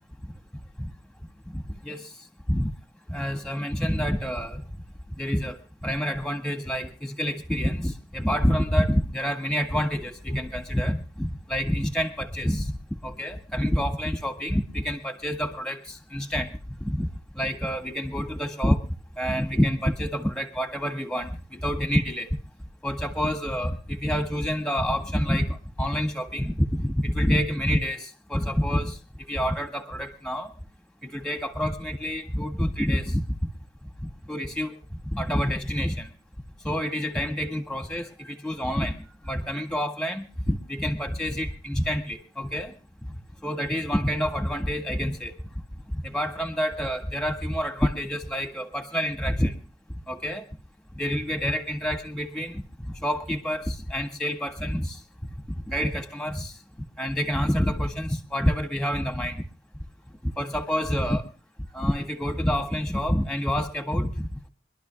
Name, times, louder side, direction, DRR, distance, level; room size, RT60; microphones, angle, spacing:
voice 1, 3.1-4.6 5.2-5.6 5.8-12.7 13.0-16.5 16.8-17.1 17.3-18.8 19.2-22.4 22.8-30.5 31.0-33.2 34.3-34.8 35.1-36.1 36.6-42.7 43.4-45.3 45.9-49.5 50.1-50.5 50.9-55.0 55.7-56.5 57.0-59.4 60.4-61.2 61.7-64.5, equal, 5° left, 4 dB, 1.8 m, -27 dB
26.0 x 12.5 x 2.3 m, 0.35 s
head